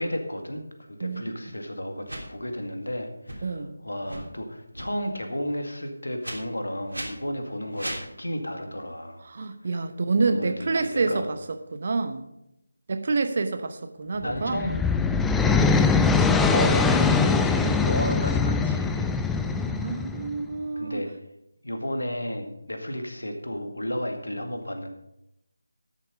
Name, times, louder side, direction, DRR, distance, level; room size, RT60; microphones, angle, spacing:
voice 1, 0.0-9.2 10.3-11.2 14.2-14.8 16.4-19.2 20.8-21.1 21.6-24.9, equal, 70° left, 5 dB, 1.9 m, -33 dB
voice 2, 1.0-1.4 3.4-3.8 9.2-12.2 12.9-14.6 19.4-21.0, right 3 dB, 40° right, 9 dB, 0.9 m, -28 dB
sound 1, 2.0-2.2 3.2-3.4 4.0-4.2 4.7-4.9 6.2-6.3 6.9-7.1 7.7-8.0, right 1 dB, 75° right, 3.2 m, -35 dB
sound 2, 14.3-20.4, left 4 dB, 5° left, 0.3 m, -22 dB
12.5 x 7.0 x 5.2 m, 0.84 s
figure-of-eight pair, 160°, 0 cm